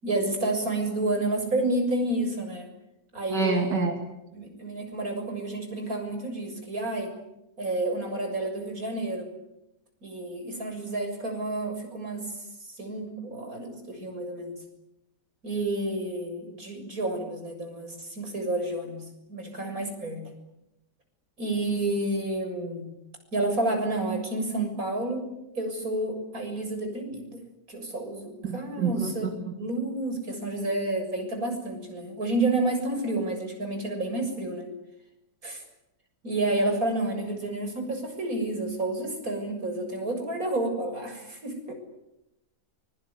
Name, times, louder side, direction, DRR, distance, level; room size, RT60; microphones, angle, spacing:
voice 1, 0.0-2.7 3.1-3.9 4.3-7.1 7.6-9.3 10.0-14.6 15.4-20.3 21.4-22.9 23.3-27.4 27.7-34.7 35.4-35.6 36.2-41.7, right 2 dB, 50° right, 4 dB, 7.5 m, -30 dB
voice 2, 3.3-3.9 28.4-29.1, right 5 dB, 70° right, 4 dB, 3.2 m, -26 dB
24.5 x 23.5 x 9.7 m, 0.88 s
omnidirectional pair, 1.9 m